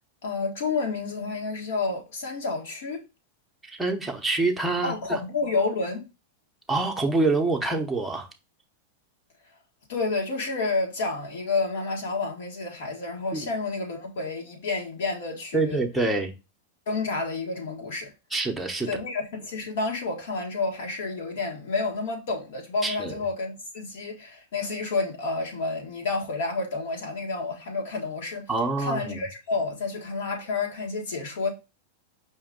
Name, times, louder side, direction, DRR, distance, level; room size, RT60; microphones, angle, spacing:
voice 1, 0.2-3.0 4.8-6.0 9.9-15.8 16.9-18.1 18.8-28.4 28.8-31.5, left 3 dB, 75° left, 1.6 m, -30 dB
voice 2, 3.7-5.2 6.7-8.3 13.3-13.5 15.5-16.3 18.3-19.0 22.8-23.2 28.5-29.2, right 3 dB, 5° right, 0.7 m, -26 dB
5.1 x 2.5 x 3.7 m
supercardioid pair, 145°, 0 cm